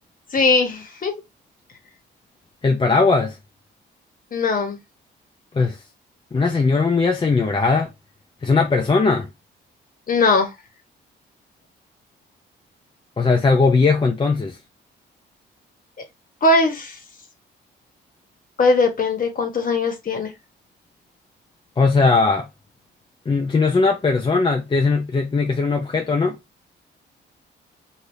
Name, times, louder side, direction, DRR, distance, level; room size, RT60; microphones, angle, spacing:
voice 1, 0.3-1.1 4.3-4.8 10.1-10.5 16.4-17.0 18.6-20.3, left 3 dB, 45° left, 1.3 m, -19 dB
voice 2, 2.6-3.3 5.5-5.8 6.3-7.9 8.4-9.3 13.2-14.5 21.8-22.5 23.3-26.3, left 4 dB, 25° left, 0.6 m, -19 dB
3.2 x 2.7 x 2.7 m
cardioid pair, 90°, 20 cm